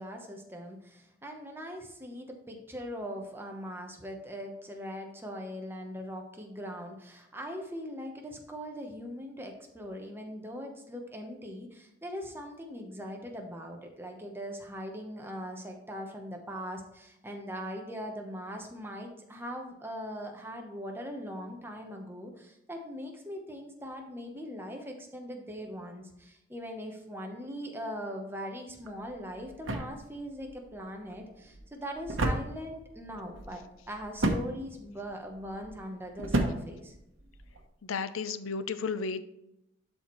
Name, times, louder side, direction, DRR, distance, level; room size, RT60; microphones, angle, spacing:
voice 1, 0.0-36.9, equal, 10° right, 3 dB, 0.9 m, -41 dB
sound 1, 28.8-37.6, right 1 dB, 70° right, 1.0 m, -35 dB
voice 2, 37.8-39.2, left 5 dB, 80° left, 12 dB, 0.5 m, -33 dB
12.0 x 4.3 x 3.1 m, 0.86 s
head